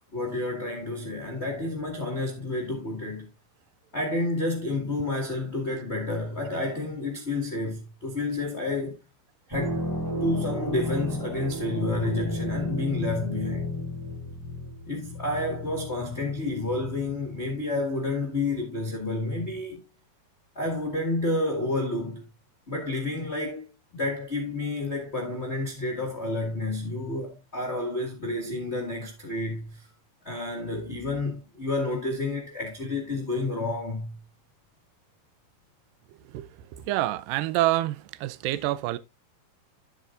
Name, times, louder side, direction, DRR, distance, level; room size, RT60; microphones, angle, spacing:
voice 1, 0.1-3.3 3.9-9.0 9.5-9.9 10.2-13.7 14.9-19.8 20.5-22.2 22.7-29.9 30.2-34.2, left 2 dB, 40° left, 0.9 m, -30 dB
sound 1, 9.5-17.5 18.1-18.5, left 1 dB, 5° right, 2.0 m, -33 dB
voice 2, 36.3-39.0, right 15 dB, 85° right, 2.0 m, -27 dB
11.5 x 8.2 x 2.5 m
omnidirectional pair, 4.6 m